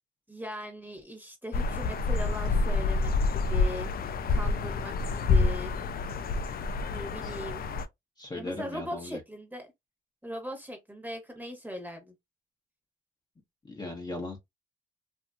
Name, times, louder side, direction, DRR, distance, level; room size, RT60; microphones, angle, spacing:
voice 1, 0.3-5.8 6.9-7.6 8.3-9.7 10.2-12.1, equal, 10° right, 1.2 m, -39 dB
sound 1, 1.5-7.9, left 4 dB, 50° left, 0.4 m, -28 dB
voice 2, 8.2-9.2 13.6-14.4, left 2 dB, 20° left, 0.9 m, -38 dB
2.8 x 2.7 x 2.3 m
cardioid pair, 100°, 20 cm